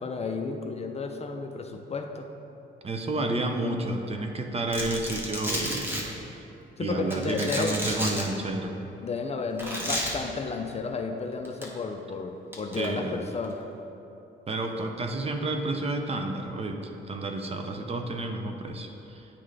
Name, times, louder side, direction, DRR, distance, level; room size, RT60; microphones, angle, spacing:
voice 1, 0.0-2.3 6.8-7.8 9.0-13.7, left 4 dB, 30° left, 4 dB, 0.4 m, -32 dB
voice 2, 2.8-6.0 6.4-6.5 6.8-8.8 12.8-13.2 14.5-19.3, right 2 dB, 30° right, 4 dB, 0.6 m, -30 dB
Domestic sounds home sounds, 4.7-6.0 7.1-8.2 9.6-10.1 11.4-11.6 12.5-12.9, equal, 10° right, 1.2 m, -31 dB
10.0 x 3.7 x 3.3 m, 3.0 s
cardioid pair, 90°, 20 cm